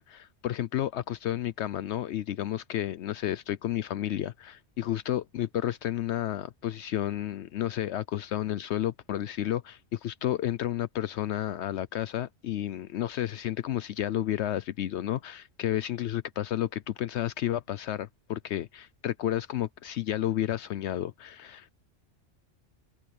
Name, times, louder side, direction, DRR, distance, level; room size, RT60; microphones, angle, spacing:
voice 1, 0.0-21.7, left 12 dB, 75° left, 0.9 m, -31 dB
omnidirectional pair, 1.2 m